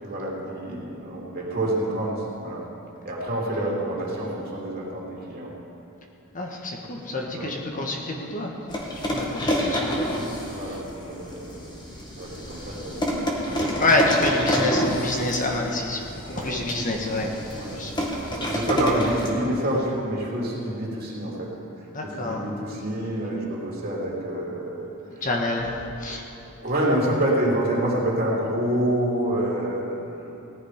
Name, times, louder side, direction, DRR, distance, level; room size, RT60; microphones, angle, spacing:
voice 1, 0.0-2.7 3.0-5.5 7.3-7.6 10.5-11.6 12.2-13.3 13.5-13.8 16.3-16.6 17.5-17.8 18.3-21.5 21.8-25.3 26.6-30.3, right 1 dB, 45° right, -5 dB, 3.1 m, -27 dB
voice 2, 6.3-8.5 9.1-10.0 10.7-10.8 13.7-16.0 16.2-17.4 17.7-18.1 18.4-18.6 21.9-22.4 25.2-26.2, left 2 dB, 35° left, 0 dB, 1.3 m, -27 dB
sound 1, 8.7-19.3, equal, 20° left, 1.6 m, -28 dB
18.0 x 11.0 x 5.0 m, 2.8 s
head